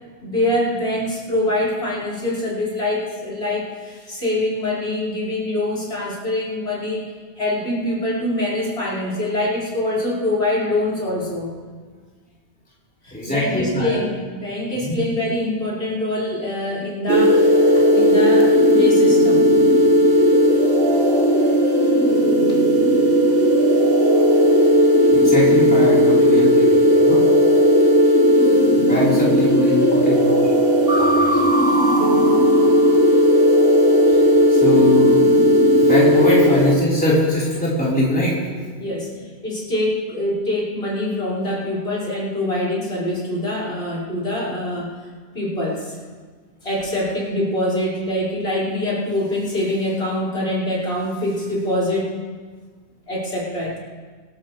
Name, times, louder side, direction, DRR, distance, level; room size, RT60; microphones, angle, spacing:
voice 1, 0.2-7.0 7.4-11.5 13.0-19.5 38.8-44.9 45.3-46.0 46.6-52.1 53.1-53.8, left 1 dB, 60° left, -6 dB, 5.6 m, -24 dB
voice 2, 13.1-14.0 14.8-15.0 25.1-27.2 28.8-30.6 31.0-31.4 34.5-35.1 35.8-38.3, left 1 dB, 5° left, -8 dB, 4.2 m, -22 dB
sound 1, 17.1-36.8, equal, 50° right, 1.7 m, -15 dB
25.5 x 13.0 x 3.3 m, 1.5 s
omnidirectional pair, 1.2 m